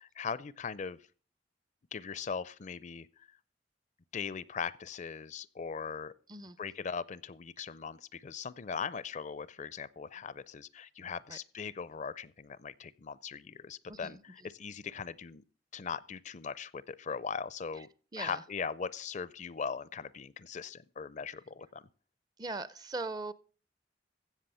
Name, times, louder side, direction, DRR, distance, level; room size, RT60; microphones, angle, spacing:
voice 1, 0.0-1.0 1.9-3.1 4.1-6.1 6.6-15.4 15.7-17.9 18.2-21.8, left 6 dB, 45° left, 0.5 m, -40 dB
voice 2, 13.9-14.2 18.1-18.4 22.4-23.3, right 3 dB, 25° right, 0.6 m, -39 dB
15.5 x 6.7 x 5.5 m
head